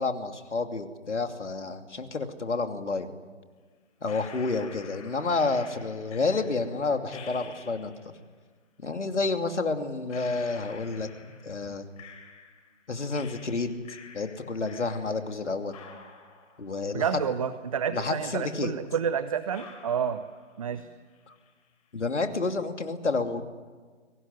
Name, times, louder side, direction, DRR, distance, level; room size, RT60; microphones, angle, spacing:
voice 1, 0.0-3.1 4.0-8.1 8.8-11.1 11.4-11.8 12.9-13.7 14.1-15.8 16.6-17.0 17.9-18.7 21.3-21.4 21.9-23.4, left 3 dB, 70° left, 6 dB, 2.8 m, -30 dB
sound 1, 4.0-8.2 9.3-9.4 10.1-12.8 13.1-15.4 15.7-17.8 18.1-18.2 18.9-19.0 19.5-20.8 21.1-21.7, left 6 dB, 30° left, 4.5 m, -50 dB
voice 2, 16.9-20.2 20.6-20.9, right 7 dB, 30° right, 12 dB, 0.7 m, -29 dB
23.5 x 19.0 x 9.9 m, 1.5 s
figure-of-eight pair, 145°, 36 cm